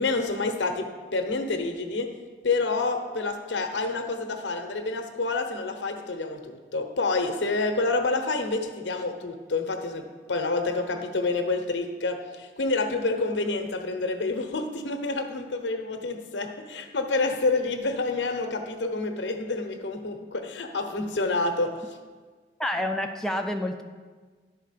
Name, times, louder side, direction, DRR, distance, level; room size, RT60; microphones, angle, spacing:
voice 1, 0.0-2.1 2.4-22.0, left 3 dB, 85° left, 5 dB, 0.9 m, -28 dB
voice 2, 22.6-23.8, left 1 dB, 5° left, 3 dB, 0.3 m, -28 dB
11.0 x 4.2 x 5.7 m, 1.5 s
head